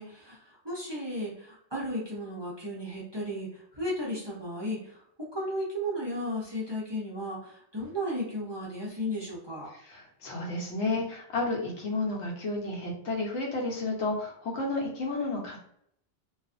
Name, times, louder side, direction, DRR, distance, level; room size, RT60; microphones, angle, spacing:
voice 1, 0.0-9.7, equal, 30° right, -6 dB, 0.6 m, -34 dB
voice 2, 9.8-15.6, left 2 dB, 85° left, -1 dB, 1.1 m, -31 dB
2.5 x 2.4 x 2.4 m, 0.70 s
omnidirectional pair, 1.2 m